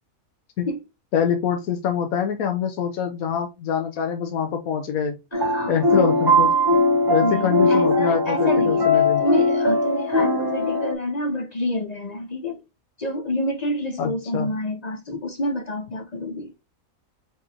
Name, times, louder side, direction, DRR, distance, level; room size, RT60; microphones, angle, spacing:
voice 1, 1.1-5.2 5.7-6.5 7.1-9.2 14.0-14.5, left 8 dB, 80° left, 1.1 m, -25 dB
voice 2, 5.3-6.0 7.2-8.9 9.2-12.6 13.0-16.5, left 1 dB, 40° left, 0.6 m, -28 dB
sound 1, 5.3-10.9, left 1 dB, 25° right, 0.6 m, -20 dB
4.7 x 3.7 x 2.7 m
omnidirectional pair, 1.5 m